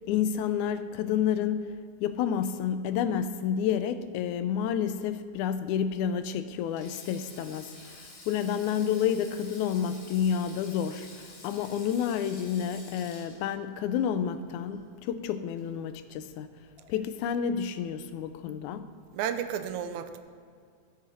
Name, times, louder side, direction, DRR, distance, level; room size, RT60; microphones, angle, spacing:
voice 1, 0.1-1.7 2.0-16.5 16.9-18.9, left 8 dB, 90° left, 11 dB, 2.0 m, -30 dB
Sink (filling or washing), 6.6-15.1 15.4-15.6 16.8-17.0, left 2 dB, 65° left, 4.0 m, -50 dB
voice 2, 19.1-20.2, right 9 dB, 85° right, 9 dB, 2.0 m, -32 dB
14.0 x 9.0 x 4.2 m, 2.1 s
omnidirectional pair, 3.4 m